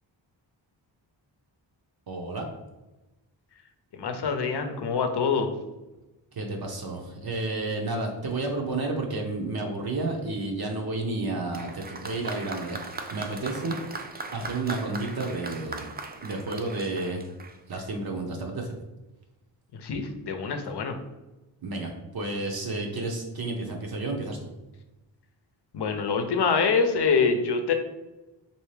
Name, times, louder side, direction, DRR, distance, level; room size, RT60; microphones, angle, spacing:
voice 1, 2.1-2.4 6.3-13.8 14.3-15.9 16.2-17.2 17.7-18.8 21.6-24.5, right 2 dB, 50° right, 1 dB, 0.7 m, -31 dB
voice 2, 3.9-5.5 19.7-21.0 25.7-27.7, left 5 dB, 60° left, 6 dB, 0.7 m, -25 dB
Applause, 11.5-18.0, right 3 dB, 20° right, 0.4 m, -39 dB
3.3 x 2.7 x 3.2 m, 1.0 s
cardioid pair, 60°, 46 cm